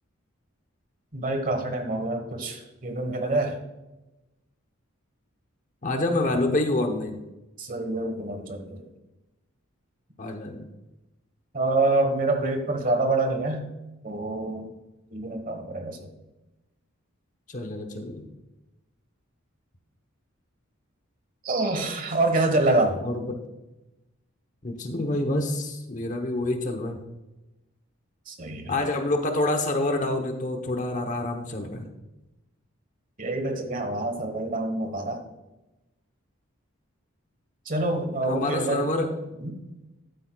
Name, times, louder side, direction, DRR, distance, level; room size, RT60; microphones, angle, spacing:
voice 1, 1.1-3.6 7.6-8.8 11.5-13.6 14.0-14.7 15.1-16.0 21.4-23.0 28.3-28.7 33.2-35.2 37.7-38.8 39.4-39.5, right 2 dB, 40° right, 5 dB, 1.3 m, -26 dB
voice 2, 5.8-7.2 10.2-10.7 17.5-18.2 23.0-23.4 24.6-27.0 28.7-31.9 38.2-39.1, left 2 dB, 35° left, 5 dB, 0.9 m, -27 dB
13.0 x 8.4 x 2.3 m, 0.99 s
head